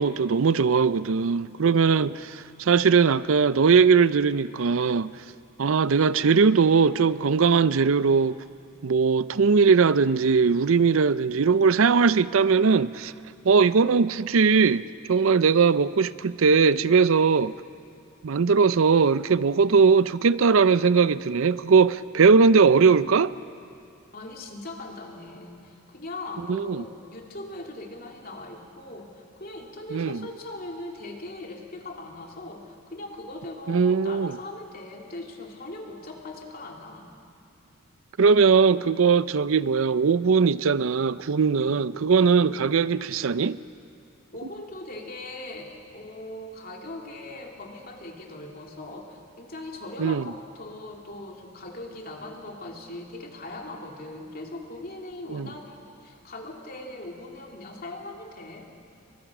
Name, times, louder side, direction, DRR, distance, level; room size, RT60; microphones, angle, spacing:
voice 1, 0.0-5.1 5.6-8.4 8.8-13.1 13.4-17.5 18.2-23.3 26.5-26.8 29.9-30.2 33.7-34.3 38.2-43.6 50.0-50.2 55.3-55.5, right 5 dB, 70° right, 0.5 m, -20 dB
voice 2, 24.1-37.1 41.4-41.8 44.3-58.7, left 2 dB, 40° left, 2.8 m, -40 dB
29.5 x 23.5 x 6.0 m
head